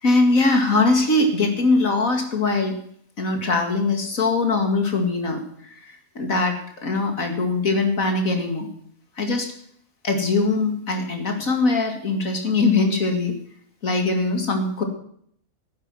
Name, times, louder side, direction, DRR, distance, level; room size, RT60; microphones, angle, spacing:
voice 1, 0.0-2.8 3.2-8.7 9.2-9.5 10.0-13.3 13.8-14.8, left 3 dB, 70° left, 5 dB, 2.7 m, -21 dB
11.5 x 10.0 x 7.8 m, 0.64 s
omnidirectional pair, 1.5 m